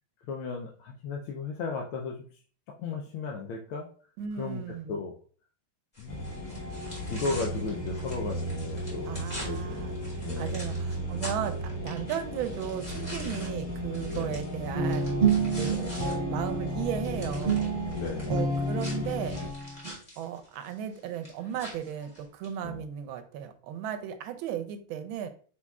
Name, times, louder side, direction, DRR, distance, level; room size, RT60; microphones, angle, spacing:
voice 1, 0.3-2.2 2.8-3.9 4.4-4.6 4.9-5.1 6.0-6.3 6.9-9.9 10.2-10.7 14.1-14.3 15.5-15.8 17.9-18.4 22.6-22.8, left 4 dB, 80° left, 0 dB, 1.4 m, -35 dB
voice 2, 4.2-5.0 9.0-10.0 10.4-15.3 15.6-16.0 16.3-17.7 18.3-19.4 20.2-25.3, right 9 dB, 80° right, 8 dB, 1.3 m, -35 dB
sound 1, 5.9-16.1 16.5-22.5, equal, 20° left, 1.4 m, -45 dB
sound 2, 6.1-19.5, equal, 45° left, 1.4 m, -35 dB
Guitar, 14.7-19.9, right 4 dB, 40° right, 1.0 m, -29 dB
4.4 x 4.2 x 2.3 m, 0.43 s
omnidirectional pair, 2.3 m